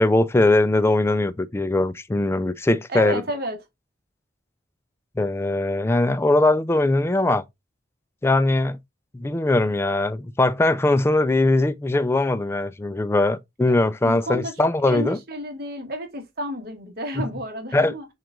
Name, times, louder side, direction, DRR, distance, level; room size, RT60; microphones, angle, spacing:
voice 1, 0.0-3.2 5.2-7.4 8.2-8.8 9.1-15.2 17.2-17.3 17.7-17.9, left 2 dB, 15° left, 0.3 m, -21 dB
voice 2, 2.9-3.6 13.7-13.8 14.0-14.5 14.8-18.1, equal, 55° right, 1.3 m, -31 dB
6.0 x 2.4 x 3.5 m
head